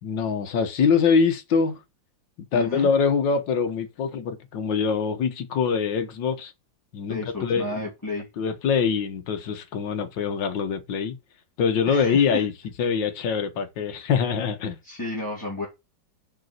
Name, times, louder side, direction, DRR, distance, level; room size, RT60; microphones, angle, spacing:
voice 1, 0.0-1.8 2.5-6.5 6.9-7.9 8.4-11.2 11.6-12.5 12.8-14.8, left 6 dB, 75° left, 1.8 m, -24 dB
voice 2, 2.5-2.9 7.1-8.3 11.9-12.4 14.8-15.7, left 2 dB, 10° left, 2.7 m, -32 dB
6.7 x 5.2 x 6.5 m
omnidirectional pair, 2.0 m